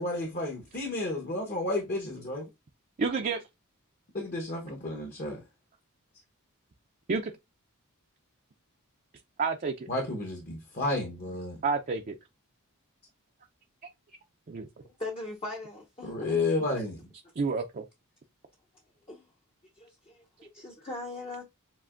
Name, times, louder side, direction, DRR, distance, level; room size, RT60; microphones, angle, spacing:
voice 1, 0.0-2.4 4.1-5.4 9.9-11.6 16.0-17.0, left 2 dB, 45° left, 1.0 m, -31 dB
voice 2, 3.0-3.4 7.1-7.3 9.4-9.9 11.6-12.2 14.5-14.7 17.4-17.9, right 4 dB, 40° right, 0.5 m, -29 dB
voice 3, 15.0-16.4 19.1-19.2 19.8-21.4, left 2 dB, 25° left, 0.7 m, -40 dB
7.4 x 2.6 x 2.4 m
head